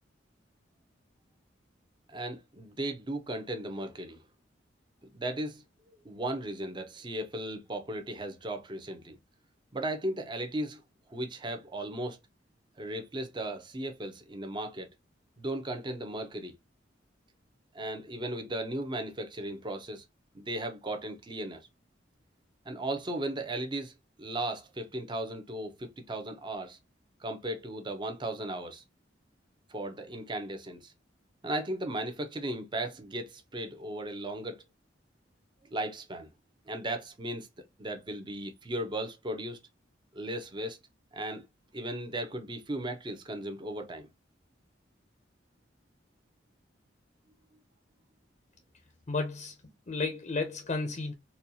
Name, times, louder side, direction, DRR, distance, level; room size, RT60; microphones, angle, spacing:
voice 1, 2.1-4.2 5.1-5.6 6.0-9.2 9.7-10.8 11.1-12.2 12.8-14.9 15.4-16.5 17.7-20.0 20.3-21.6 22.7-26.8 27.2-28.8 29.7-30.9 31.4-34.6 35.7-36.3 36.7-37.5 37.8-39.6 40.1-40.8 41.1-41.4 41.7-44.1, right 1 dB, 25° right, 0.7 m, -36 dB
voice 2, 49.1-49.5 49.9-51.1, left 3 dB, 35° left, 0.6 m, -32 dB
4.2 x 2.3 x 2.7 m
head